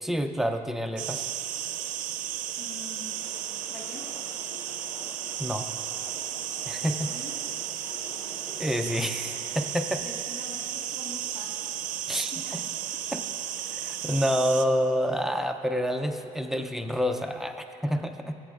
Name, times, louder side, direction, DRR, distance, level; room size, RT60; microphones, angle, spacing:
voice 1, 0.0-1.3 5.4-5.7 6.7-7.0 8.5-10.0 12.1-12.6 13.1-13.2 13.7-18.3, equal, ahead, 5 dB, 0.3 m, -28 dB
sound 1, 1.0-14.7, right 11 dB, 70° right, 0.5 m, -34 dB
voice 2, 2.6-3.2 3.7-4.0 6.8-7.4 7.9-8.0 10.0-11.6 12.0-12.4, left 3 dB, 85° left, -1 dB, 1.3 m, -45 dB
sound 2, 3.1-9.6, left 1 dB, 60° left, 2.6 m, -48 dB
20.5 x 8.4 x 2.3 m, 2.7 s
cardioid pair, 165°, 14 cm